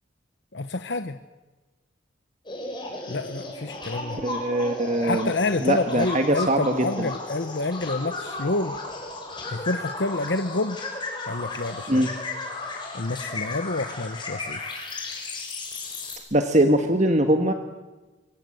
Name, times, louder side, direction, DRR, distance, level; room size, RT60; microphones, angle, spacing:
voice 1, 0.5-1.2 3.1-4.2 5.0-8.7 9.5-10.8 11.3-12.2 12.9-14.6 15.1-15.3, left 2 dB, 60° left, 9 dB, 1.0 m, -28 dB
sound 1, 2.5-16.2, left 3 dB, 25° left, 6.2 m, -34 dB
voice 2, 4.2-5.3 5.6-7.1 11.9-12.1 16.3-17.5, right 1 dB, 35° right, 6 dB, 1.5 m, -22 dB
25.5 x 24.0 x 7.9 m, 1.2 s
head